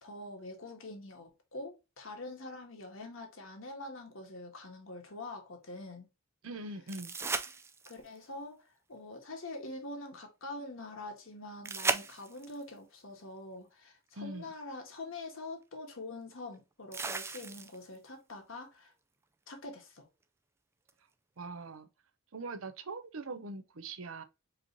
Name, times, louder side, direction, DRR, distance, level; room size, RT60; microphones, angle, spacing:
voice 1, 0.0-6.1 7.8-18.9 19.5-20.1, left 2 dB, 70° left, 1.4 m, -45 dB
voice 2, 6.4-7.1 14.2-14.5 21.4-21.9 22.3-24.2, right 3 dB, 75° right, 0.7 m, -42 dB
sound 1, 6.9-8.2 11.6-12.6 14.5-14.6 16.9-18.0 20.9-21.0, right 4 dB, 10° right, 0.3 m, -36 dB
4.8 x 3.1 x 2.7 m
head